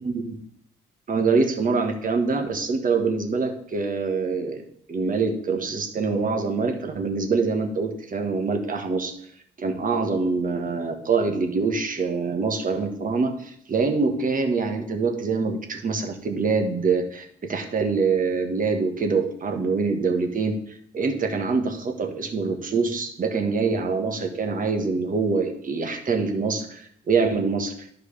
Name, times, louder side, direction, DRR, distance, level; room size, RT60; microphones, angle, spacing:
voice 1, 0.0-0.3 1.1-9.1 9.6-20.6 20.9-27.7, right 4 dB, 45° right, 4 dB, 1.5 m, -25 dB
13.5 x 4.7 x 3.4 m, 0.67 s
cardioid pair, 90°, 20 cm